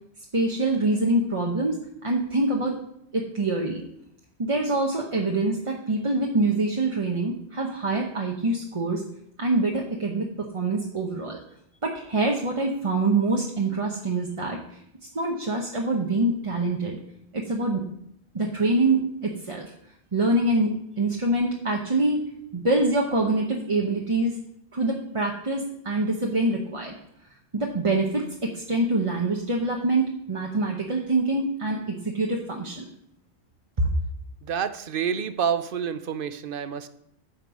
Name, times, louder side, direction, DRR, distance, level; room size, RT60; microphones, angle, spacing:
voice 1, 0.3-1.8 2.0-2.8 3.1-3.8 4.4-9.0 9.4-11.4 11.8-14.8 15.1-17.0 17.3-17.8 18.3-19.7 20.1-20.7 21.0-22.2 22.5-24.3 24.7-26.9 27.5-32.9 33.8-33.9, right 2 dB, 30° right, -1 dB, 0.9 m, -25 dB
voice 2, 34.4-36.9, right 7 dB, 60° right, 12 dB, 0.8 m, -28 dB
8.9 x 5.3 x 6.3 m, 0.74 s
omnidirectional pair, 1.1 m